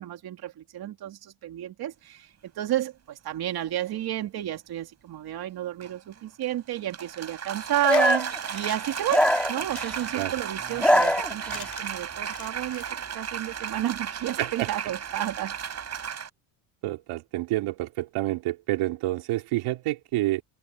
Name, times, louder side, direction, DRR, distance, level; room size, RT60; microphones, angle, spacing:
voice 1, 0.0-12.9 13.1-15.6, right 13 dB, 45° right, 2.8 m, -31 dB
sound 1, 2.7-2.8 5.8-16.3, right 8 dB, 30° right, 6.5 m, -35 dB
sound 2, 7.6-12.9, left 7 dB, 25° left, 5.4 m, -43 dB
sound 3, 7.8-8.4 9.1-10.0 10.6-11.7, left 1 dB, ahead, 2.8 m, -23 dB
voice 2, 14.4-14.7 16.8-20.4, right 17 dB, 80° right, 3.0 m, -28 dB
open air
cardioid pair, 170°, 50 cm